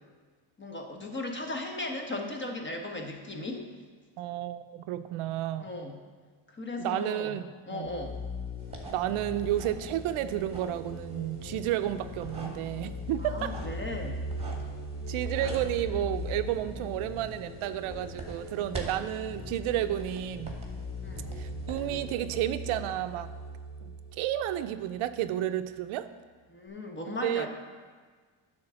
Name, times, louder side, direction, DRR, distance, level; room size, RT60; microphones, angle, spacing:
voice 1, 0.6-3.7 5.6-6.0 6.5-7.4 7.7-8.2 13.2-14.2 21.0-21.4 26.5-27.5, left 2 dB, 25° left, 2 dB, 1.2 m, -37 dB
voice 2, 4.2-5.7 6.8-7.9 8.9-13.5 15.1-20.6 21.4-23.3 23.8-26.1 27.1-27.5, right 12 dB, 80° right, 11 dB, 0.6 m, -31 dB
sound 1, 7.8-25.2, left 1 dB, 65° left, 2.1 m, -40 dB
sound 2, 8.6-22.1, right 2 dB, 10° right, 1.6 m, -46 dB
9.8 x 3.8 x 6.8 m, 1.5 s
cardioid pair, 95°, 49 cm